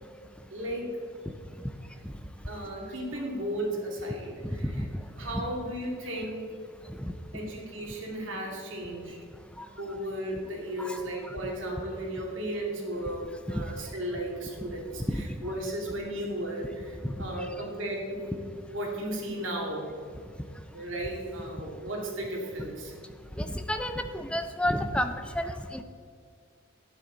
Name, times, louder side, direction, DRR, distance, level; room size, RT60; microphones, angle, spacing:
voice 1, 0.5-1.0 2.5-4.8 5.2-6.5 7.3-9.2 9.8-19.9 20.7-22.9, right 1 dB, 65° right, -1 dB, 2.4 m, -35 dB
voice 2, 15.1-15.5 17.0-17.1 23.4-25.8, equal, 5° left, 8 dB, 0.5 m, -31 dB
11.5 x 9.5 x 3.9 m, 2.2 s
head